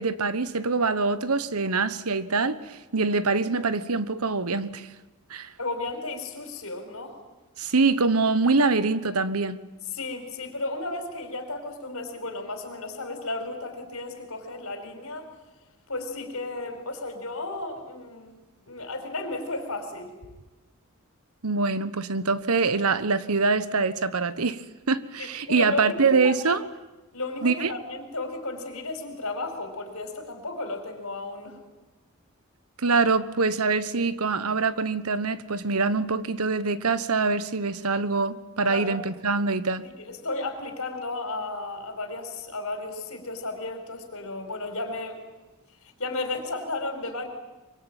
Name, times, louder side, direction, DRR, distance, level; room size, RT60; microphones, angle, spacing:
voice 1, 0.0-4.9 5.3-5.5 7.6-9.6 21.4-26.6 27.4-27.7 32.8-39.8, right 4 dB, 85° right, 1.3 m, -24 dB
voice 2, 5.6-7.1 9.9-15.3 15.9-18.4 18.7-20.1 25.2-26.6 27.1-31.6 38.7-39.0 40.0-45.2 46.0-47.3, left 2 dB, 70° left, 5.1 m, -34 dB
25.0 x 24.0 x 9.1 m
head